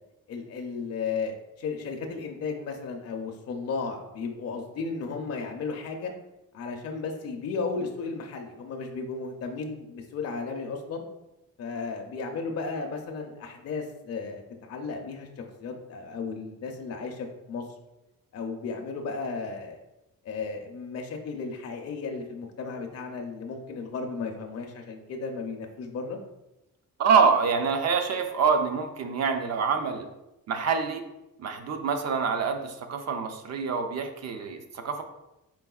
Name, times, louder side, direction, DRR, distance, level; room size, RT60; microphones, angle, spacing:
voice 1, 0.3-6.1 6.5-11.0 11.6-15.3 15.6-17.6 18.3-19.8 20.2-26.2, left 4 dB, 45° left, 2 dB, 0.4 m, -34 dB
voice 2, 27.0-30.1 30.5-31.0 31.4-35.0, right 5 dB, 50° right, 6 dB, 0.5 m, -26 dB
4.6 x 3.4 x 2.3 m, 0.95 s
wide cardioid pair, 140°, 35 cm